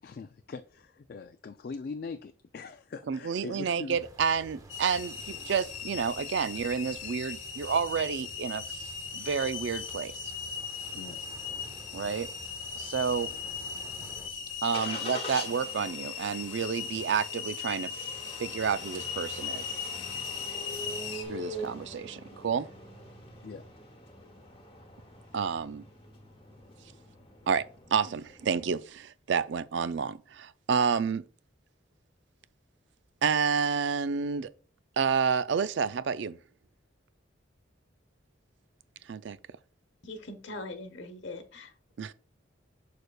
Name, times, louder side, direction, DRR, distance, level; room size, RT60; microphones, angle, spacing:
voice 1, 0.0-4.0 10.9-11.2 12.8-12.9 23.4-23.7, left 4 dB, 50° left, 0.3 m, -41 dB
voice 2, 3.1-10.3 11.9-12.3 12.8-13.3 14.6-19.6 21.3-22.7 25.3-25.8 27.5-27.6 27.9-31.2 33.2-34.5 35.0-36.4 39.1-39.4 42.0-42.1, right 6 dB, 65° right, 0.4 m, -30 dB
sound 1, 3.9-14.3, right 1 dB, 20° right, 0.7 m, -51 dB
sound 2, 4.7-21.2, left 6 dB, 90° left, 1.4 m, -38 dB
Engine starting, 13.5-28.8, left 1 dB, 25° left, 1.1 m, -44 dB
voice 3, 40.0-41.7, left 2 dB, 70° left, 1.1 m, -41 dB
6.5 x 6.4 x 2.3 m
head